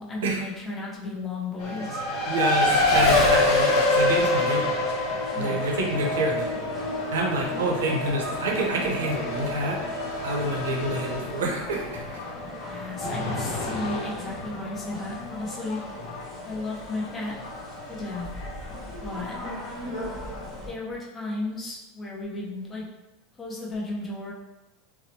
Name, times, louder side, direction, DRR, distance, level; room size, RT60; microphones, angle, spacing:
voice 1, 0.0-2.0 5.3-5.6 12.4-15.8 16.4-17.3 17.9-18.3 19.0-19.4 20.7-22.8 23.4-24.3, left 2 dB, 25° left, -4 dB, 0.8 m, -34 dB
Race car auto racing, 1.6-20.7, left 2 dB, 60° left, 0.6 m, -28 dB
sound 1, 1.9-11.0, right 2 dB, 40° right, 0.7 m, -47 dB
voice 2, 2.3-4.8 5.4-6.5 7.1-9.8 10.2-12.2, right 1 dB, 85° right, 0 dB, 0.6 m, -27 dB
sound 2, 3.4-20.7, equal, 10° right, 1.1 m, -42 dB
2.9 x 2.0 x 2.8 m, 1.0 s
supercardioid pair, 110°, 0 cm